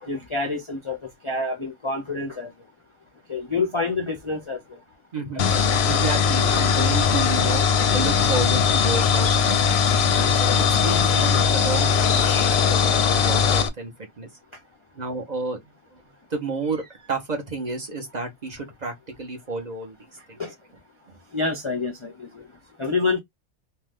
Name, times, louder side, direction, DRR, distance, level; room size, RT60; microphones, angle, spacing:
voice 1, 0.0-1.0 1.2-2.5 3.3-4.6 5.5-5.6 20.4-20.5 21.3-22.4 22.8-23.2, left 3 dB, 35° left, 0.5 m, -27 dB
voice 2, 5.1-5.5 5.9-7.6 7.9-9.7 10.1-14.3 15.0-15.6 15.9-16.0 16.3-20.0 20.3-20.4 21.1-21.2, right 3 dB, 40° right, 0.8 m, -31 dB
sound 1, 5.4-13.7, left 6 dB, 65° left, 0.7 m, -20 dB
2.7 x 2.2 x 3.4 m
omnidirectional pair, 1.2 m